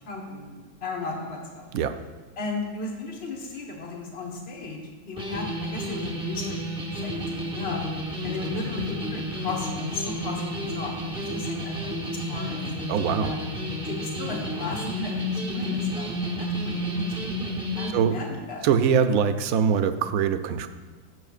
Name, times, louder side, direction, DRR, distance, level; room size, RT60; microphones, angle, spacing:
voice 1, 0.1-1.6 2.4-6.6 7.0-7.8 8.2-12.6 13.2-13.4 13.9-17.4 17.7-18.6, left 3 dB, 45° left, 0 dB, 1.5 m, -35 dB
sound 1, 5.2-17.9, equal, 5° right, 0.7 m, -31 dB
voice 2, 12.9-13.3 17.9-18.2 18.6-20.7, right 7 dB, 70° right, 9 dB, 1.0 m, -22 dB
15.5 x 6.6 x 2.4 m, 1.5 s
omnidirectional pair, 1.6 m